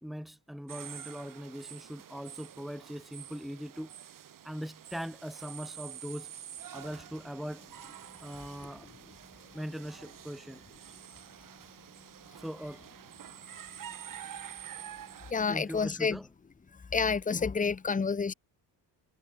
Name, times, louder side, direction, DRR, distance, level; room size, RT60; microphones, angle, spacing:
voice 1, 0.0-3.9 4.4-6.3 6.7-7.7 8.2-8.9 9.5-10.6 12.3-12.9 15.5-16.3, equal, ahead, 3.6 m, -41 dB
sound 1, 0.7-15.3, right 10 dB, 50° right, 7.4 m, -48 dB
voice 2, 15.3-16.2 16.9-18.3, left 5 dB, 20° left, 1.5 m, -29 dB
cardioid pair, 140°, 42 cm